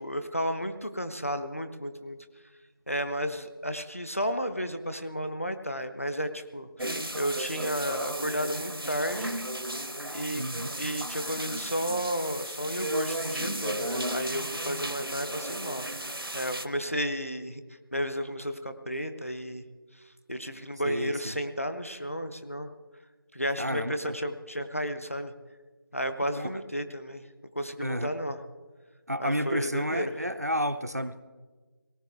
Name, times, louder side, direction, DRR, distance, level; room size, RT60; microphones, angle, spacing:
voice 1, 0.0-2.2 2.9-9.4 10.1-10.4 10.8-17.6 17.9-19.6 20.3-22.7 23.3-25.3 25.9-27.3 27.6-28.4 29.2-30.2, equal, 35° left, 9 dB, 0.7 m, -33 dB
sound 1, 6.8-16.7, right 1 dB, 80° right, 1.0 m, -34 dB
voice 2, 10.4-10.7 20.8-21.4 23.6-24.2 26.4-26.6 27.8-28.1 29.1-31.2, equal, 45° right, 10 dB, 0.5 m, -31 dB
18.5 x 17.0 x 3.5 m, 1.4 s
figure-of-eight pair, 180°, 12 cm